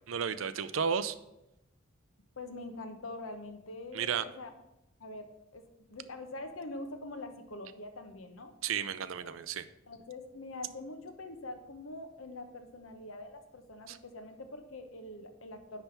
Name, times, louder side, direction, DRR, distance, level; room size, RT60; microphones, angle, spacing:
voice 1, 0.1-1.1 3.9-4.2 8.6-9.6 13.9-14.0, right 7 dB, 75° right, 13 dB, 0.5 m, -33 dB
voice 2, 2.4-4.5 5.0-8.5 9.2-9.3 9.9-15.8, left 2 dB, 85° left, 6 dB, 1.0 m, -44 dB
9.8 x 3.4 x 5.9 m, 0.89 s
head